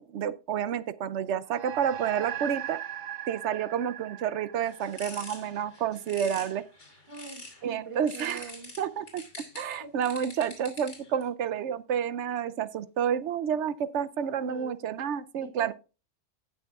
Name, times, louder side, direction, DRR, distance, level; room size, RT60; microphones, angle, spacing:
voice 1, 0.1-2.8 3.3-6.6 7.6-8.4 8.8-9.2 9.5-15.7, right 8 dB, 80° right, 1.0 m, -30 dB
sound 1, 1.5-6.2, right 10 dB, 55° right, 0.5 m, -39 dB
sound 2, 4.6-7.6 8.1-11.2, left 2 dB, 85° left, 3.2 m, -45 dB
voice 2, 7.1-8.7 9.8-9.9 14.5-14.9 15.4-15.7, right 5 dB, 25° right, 1.5 m, -43 dB
17.5 x 6.4 x 2.4 m
omnidirectional pair, 1.2 m